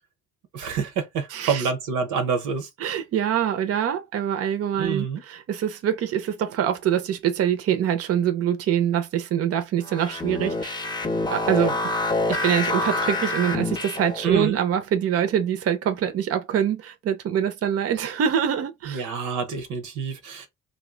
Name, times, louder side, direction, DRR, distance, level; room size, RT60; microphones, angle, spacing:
voice 1, 0.5-2.7 4.8-5.2 14.2-14.6 18.9-20.5, right 6 dB, 90° right, 0.9 m, -27 dB
voice 2, 1.3-1.7 2.8-10.9 11.3-11.8 12.3-19.0, right 9 dB, 50° right, 0.6 m, -24 dB
sound 1, 9.9-14.3, left 2 dB, 15° left, 0.6 m, -26 dB
2.6 x 2.1 x 3.7 m
cardioid pair, 90°, 30 cm